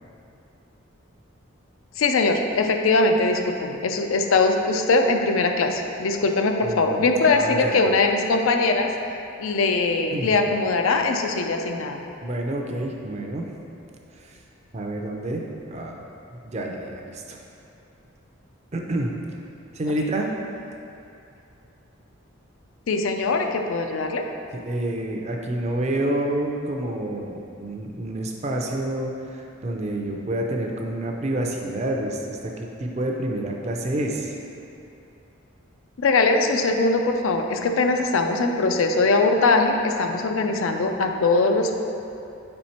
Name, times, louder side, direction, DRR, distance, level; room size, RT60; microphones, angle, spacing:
voice 1, 2.0-8.9 9.4-12.0 22.9-24.3 36.0-41.8, left 3 dB, 80° left, 5 dB, 0.4 m, -21 dB
voice 2, 6.6-7.8 10.1-10.4 12.2-13.5 14.2-14.4 14.7-16.0 16.3-17.4 18.7-19.1 19.7-20.3 24.5-34.4, right 1 dB, 30° right, 1 dB, 0.5 m, -28 dB
5.1 x 4.4 x 4.2 m, 2.7 s
head